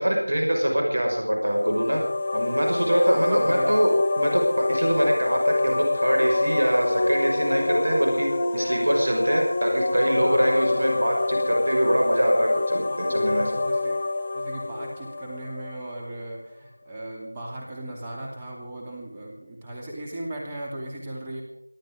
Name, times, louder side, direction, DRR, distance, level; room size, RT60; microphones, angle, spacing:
voice 1, 0.0-2.0 2.3-8.3 8.5-13.6, equal, 50° right, 1 dB, 5.7 m, -23 dB
sound 1, 1.4-16.1, left 2 dB, 20° left, 1.2 m, -26 dB
voice 2, 3.1-3.8 10.2-10.4 11.3-11.4 12.7-13.9 14.3-21.4, right 1 dB, 10° right, -1 dB, 2.5 m, -37 dB
26.5 x 12.0 x 3.8 m, 0.76 s
figure-of-eight pair, 175°, 0 cm